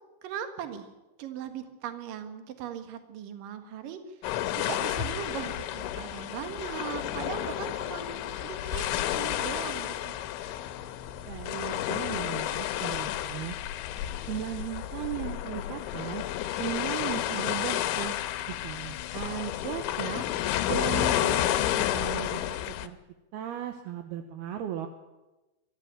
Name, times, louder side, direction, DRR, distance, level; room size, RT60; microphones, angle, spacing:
voice 1, 0.2-0.9 1.2-4.3 4.5-10.2, right 9 dB, 60° right, 8 dB, 2.5 m, -39 dB
sound 1, 4.2-22.9, left 12 dB, 75° left, 3.2 m, -31 dB
voice 2, 11.3-13.6 14.3-16.2 16.6-18.2 18.6-20.3 20.7-22.4 22.8-23.0 23.3-24.9, right 11 dB, 75° right, 6 dB, 2.4 m, -36 dB
23.5 x 13.5 x 8.9 m, 1.1 s
omnidirectional pair, 5.8 m